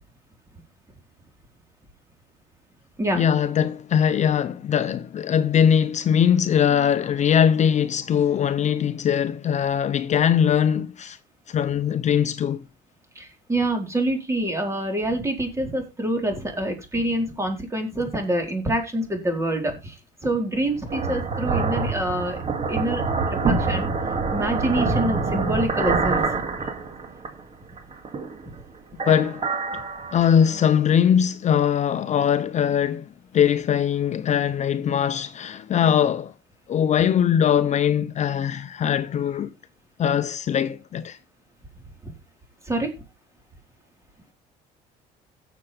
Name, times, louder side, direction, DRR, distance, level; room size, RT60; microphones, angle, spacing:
voice 1, 3.1-11.2 11.5-12.7 29.1-29.5 30.1-33.1 33.3-36.3 36.7-39.5 40.0-41.2, left 8 dB, 45° left, 0.6 m, -21 dB
voice 2, 13.2-22.4 22.7-23.0 23.3-23.9 24.3-26.3 42.7-42.9, right 1 dB, 15° right, 4.0 m, -26 dB
sound 1, 20.5-27.4 27.8-28.6 28.9-30.6, right 4 dB, 40° right, 2.2 m, -26 dB
17.0 x 6.9 x 3.4 m
cardioid pair, 110°, 17 cm